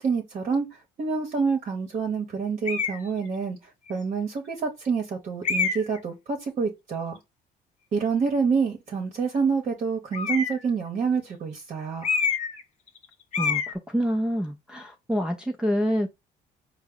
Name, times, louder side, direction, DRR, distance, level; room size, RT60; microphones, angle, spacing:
voice 1, 0.0-3.6 3.9-7.2 7.9-12.1, right 5 dB, 45° right, 0.9 m, -27 dB
sound 1, 2.6-3.0 3.9-4.0 5.4-6.0 10.1-10.7 12.0-12.6 12.9-13.0 13.3-13.7, left 5 dB, 45° left, 0.8 m, -26 dB
voice 2, 13.4-16.1, equal, 5° right, 0.5 m, -27 dB
4.6 x 2.0 x 3.7 m
cardioid pair, 110°, 17 cm